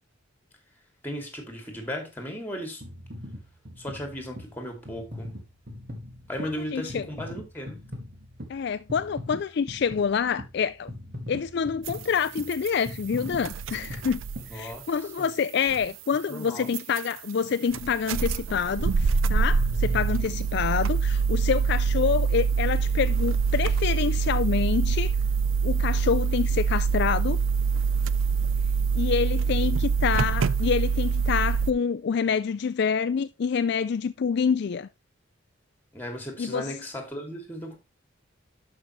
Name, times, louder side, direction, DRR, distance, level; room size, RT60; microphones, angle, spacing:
voice 1, 1.0-2.8 3.8-5.3 6.3-7.8 14.5-14.9 15.2-15.3 16.3-16.7 29.4-30.1 35.9-37.8, equal, 10° left, 2.5 m, -36 dB
sound 1, 2.8-15.2 15.8-15.9, left 1 dB, 50° right, 2.1 m, -41 dB
voice 2, 6.4-7.1 8.5-10.9 11.3-14.2 14.5-25.1 25.6-27.4 28.9-34.9 36.4-36.7, left 6 dB, 55° left, 0.4 m, -27 dB
sound 2, 11.8-11.9 12.4-12.7 13.3-14.5 15.7-15.9 16.7-17.1 17.4-17.5 17.7-31.7, right 5 dB, 80° right, 0.4 m, -25 dB
12.0 x 5.5 x 3.1 m
head